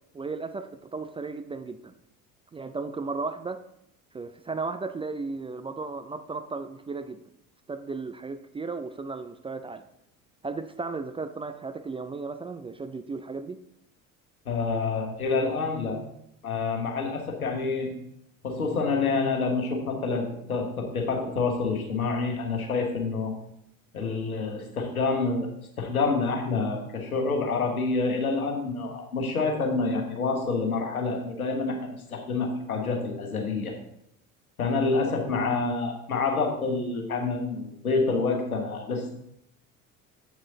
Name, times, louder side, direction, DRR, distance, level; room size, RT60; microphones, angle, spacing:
voice 1, 0.1-1.9 2.5-3.6 4.1-7.2 7.7-9.8 10.4-13.6, right 4 dB, 15° right, 9 dB, 0.4 m, -35 dB
voice 2, 14.4-16.0 16.4-17.9 18.4-23.3 23.9-25.5 25.8-33.7 34.6-39.1, left 4 dB, 90° left, 2 dB, 1.4 m, -27 dB
8.2 x 6.2 x 3.9 m, 0.78 s
hypercardioid pair, 65°, 42 cm